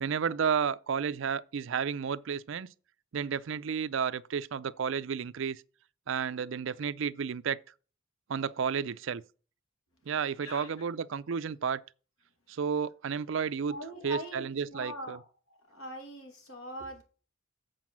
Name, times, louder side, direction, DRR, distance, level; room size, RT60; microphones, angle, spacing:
voice 1, 0.0-2.7 3.1-5.6 6.1-7.6 8.3-9.2 10.1-11.8 12.5-15.2, right 6 dB, 65° right, 0.4 m, -32 dB
voice 2, 13.7-15.2 15.7-17.0, equal, 90° left, 2.4 m, -41 dB
7.9 x 4.7 x 7.3 m
head